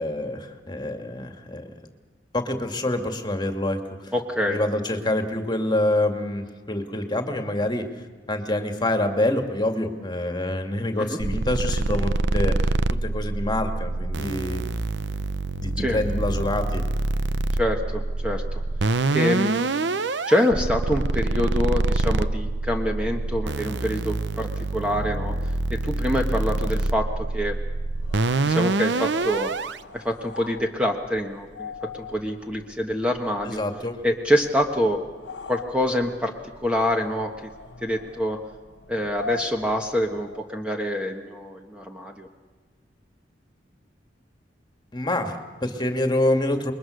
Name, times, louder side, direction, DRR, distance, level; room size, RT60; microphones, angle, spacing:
voice 1, 0.0-1.6 2.3-4.1 4.5-7.9 8.3-12.8 13.0-14.7 15.6-16.8 33.5-34.0 44.9-46.7, left 1 dB, 25° left, 5 dB, 2.2 m, -26 dB
voice 2, 4.1-4.6 11.0-11.2 15.8-16.0 17.6-18.6 19.1-19.7 20.3-25.3 25.7-27.1 27.3-27.5 28.4-29.5 29.9-33.6 34.0-35.0 35.5-36.3 36.6-37.3 37.8-38.4 38.9-42.3, equal, 5° right, 2 dB, 1.4 m, -26 dB
sound 1, 11.2-29.8, right 2 dB, 75° right, 0.8 m, -26 dB
sound 2, 27.9-40.5, left 3 dB, 85° left, 1.1 m, -42 dB
27.5 x 22.0 x 6.5 m, 1.4 s
head